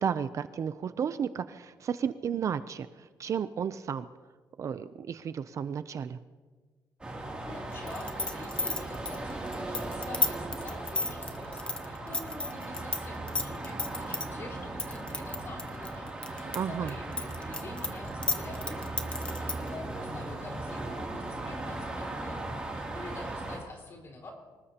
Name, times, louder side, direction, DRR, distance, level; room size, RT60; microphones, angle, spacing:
voice 1, 0.0-2.9 3.2-4.0 4.6-6.2 16.5-16.9, right 7 dB, 40° right, 12 dB, 0.5 m, -32 dB
sound 1, 7.0-23.6, right 2 dB, 15° right, 2.8 m, -38 dB
voice 2, 7.4-24.3, left 2 dB, 35° left, 0 dB, 4.3 m, -46 dB
sound 2, 7.9-13.0 13.3-14.3 14.8-16.6 16.9-19.7, left 3 dB, 15° left, 0.9 m, -31 dB
25.0 x 19.5 x 2.9 m, 1.4 s
cardioid pair, 175°, 8 cm